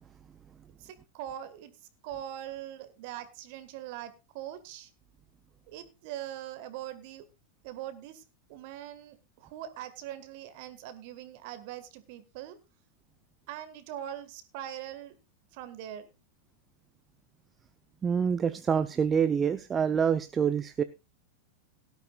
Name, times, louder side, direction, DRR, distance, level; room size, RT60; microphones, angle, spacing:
voice 1, 0.8-1.7 2.0-4.9 5.7-7.3 7.6-8.2 8.5-12.6 13.5-15.2 15.5-16.1, right 11 dB, 45° right, 11 dB, 1.7 m, -42 dB
voice 2, 18.0-20.8, right 7 dB, 20° right, 13 dB, 0.6 m, -26 dB
17.5 x 12.5 x 2.4 m, 0.27 s
figure-of-eight pair, 90°, 0 cm